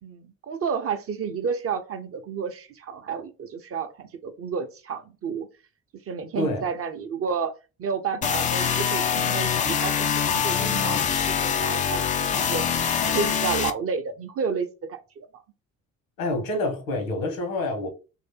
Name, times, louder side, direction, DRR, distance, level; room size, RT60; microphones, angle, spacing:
voice 1, 0.0-5.5 6.1-12.6 13.1-15.3, right 6 dB, 35° right, 0.6 m, -31 dB
sound 1, 8.2-13.7, left 7 dB, 20° left, 0.3 m, -24 dB
voice 2, 16.2-17.9, left 2 dB, 70° left, 1.3 m, -27 dB
3.2 x 2.7 x 4.1 m
figure-of-eight pair, 50°, 43 cm